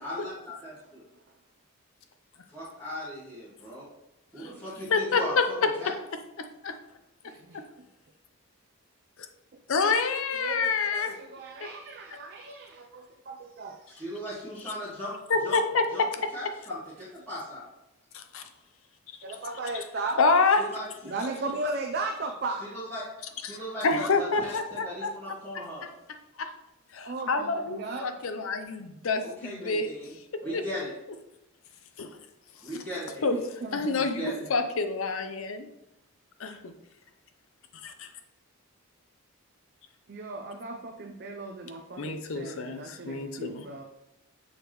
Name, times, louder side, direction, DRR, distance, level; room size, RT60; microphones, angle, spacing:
voice 1, 0.0-1.0 2.5-3.9 4.3-5.3 5.6-5.9 13.9-15.1 15.4-15.6 15.9-16.0 16.3-17.6 20.6-21.1 22.6-23.0 23.4-25.9 29.2-30.1 30.4-30.9 32.6-33.4 34.0-34.4, equal, 10° left, -13 dB, 1.8 m, -38 dB
voice 2, 4.9-5.2 5.6-5.7 6.4-6.8 7.5-7.6 9.7-11.2 11.6-11.7 15.3-16.3 18.1-18.5 19.7-19.8 20.2-20.7 23.4-23.6 23.8-25.1 25.5-25.6 26.4-26.5 26.9-29.9 30.5-30.6 32.0-32.1 33.2-33.3 33.7-35.7 36.4-36.7 37.7-38.1 42.0-43.6, left 4 dB, 65° left, 8 dB, 0.6 m, -27 dB
voice 3, 7.2-7.6 10.3-14.0 19.2-20.2 21.0-22.8 23.5-23.7 27.1-28.1 30.4-30.6 33.6-34.0 40.1-43.8, right 3 dB, 45° right, 2 dB, 0.4 m, -36 dB
6.5 x 5.0 x 3.0 m, 0.88 s
head